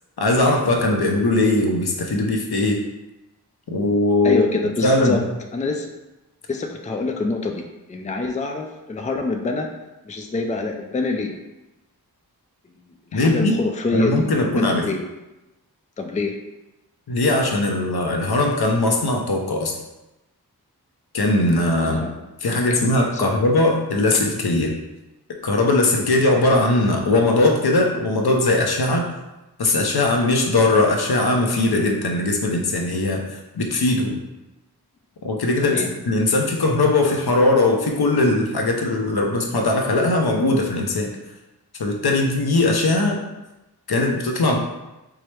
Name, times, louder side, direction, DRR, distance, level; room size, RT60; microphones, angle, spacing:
voice 1, 0.2-2.8 3.7-4.4 4.8-5.3 13.1-13.5 13.9-14.9 17.1-19.8 21.1-22.0 22.4-24.7 25.4-29.2 29.6-34.2 35.2-41.1 41.8-43.2 43.9-44.6, left 2 dB, 75° left, 2 dB, 0.6 m, -20 dB
voice 2, 4.2-5.2 5.5-5.9 6.5-7.6 7.9-9.7 10.0-11.3 12.7-12.8 13.1-15.0 16.0-16.4 21.8-22.2 22.5-22.9 23.1-23.4 35.6-35.9, left 3 dB, 20° left, 4 dB, 0.4 m, -26 dB
4.6 x 2.0 x 3.1 m, 1.0 s
wide cardioid pair, 45°, 39 cm